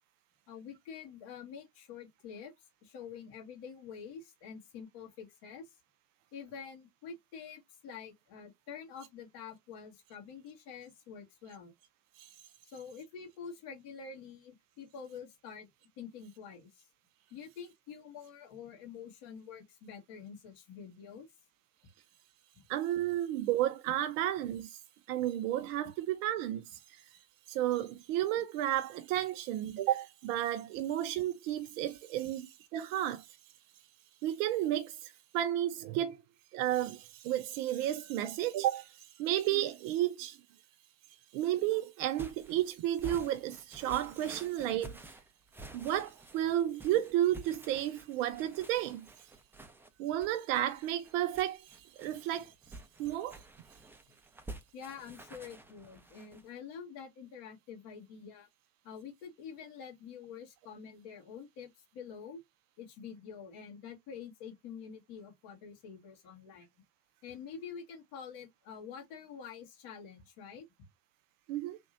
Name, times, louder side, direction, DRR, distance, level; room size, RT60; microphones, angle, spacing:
voice 1, 0.5-2.5 2.8-5.8 6.3-11.7 12.6-15.7 16.0-16.9 17.3-21.3 22.5-22.7 54.1-54.2 54.7-58.5 58.8-62.4 62.8-66.7 67.2-70.7, left 6 dB, 55° left, 1.8 m, -47 dB
voice 2, 22.7-24.8 25.1-27.0 27.5-33.3 34.2-36.2 36.5-40.4 41.3-45.2 45.7-49.1 50.0-52.5 53.0-53.4 71.5-71.8, right 12 dB, 50° right, 0.6 m, -32 dB
sound 1, 42.2-56.5, right 2 dB, 5° right, 0.7 m, -50 dB
3.5 x 2.9 x 2.5 m
figure-of-eight pair, 70°, 49 cm